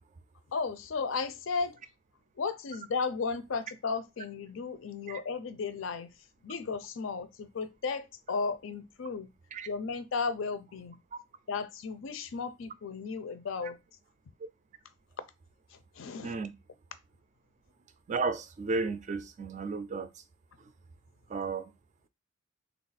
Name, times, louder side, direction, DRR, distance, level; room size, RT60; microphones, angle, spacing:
voice 1, 0.5-1.8 2.4-6.1 6.4-9.3 9.7-11.0 11.5-13.8 15.7-16.4, left 4 dB, 75° left, 0.5 m, -34 dB
voice 2, 16.2-16.5 18.1-20.1 21.3-21.7, right 4 dB, 35° right, 0.3 m, -33 dB
3.3 x 2.4 x 3.9 m
head